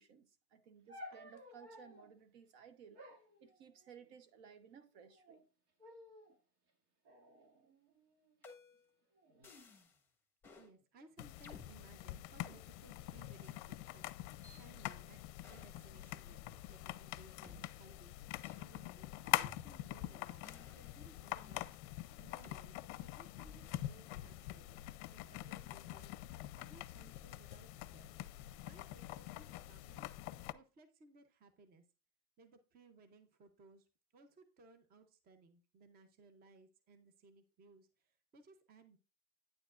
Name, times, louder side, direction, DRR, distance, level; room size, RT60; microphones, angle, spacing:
voice 1, 0.0-3.0 3.4-5.4, right 7 dB, 60° right, 1.1 m, -59 dB
sound 1, 0.9-2.1 2.9-4.2 4.9-5.4 5.8-6.4 7.0-8.3 9.1-9.6, left 1 dB, 80° right, 2.4 m, -56 dB
sound 2, 8.4-8.9 9.4-10.0 10.4-10.7 11.4-12.6 13.4-13.6 14.4-14.6 15.4-15.9 16.4-16.5 17.4-17.6 18.4-18.7 19.4-20.0 20.4-21.7 22.4-22.6 23.4-23.8, left 4 dB, 5° left, 1.2 m, -58 dB
voice 2, 10.6-15.2 15.5-28.1 28.6-31.8 32.4-33.9 34.1-39.0, right 3 dB, 20° right, 0.7 m, -63 dB
sound 3, 11.2-30.5, left 16 dB, 55° left, 0.5 m, -45 dB
9.4 x 6.9 x 2.4 m
supercardioid pair, 135°, 44 cm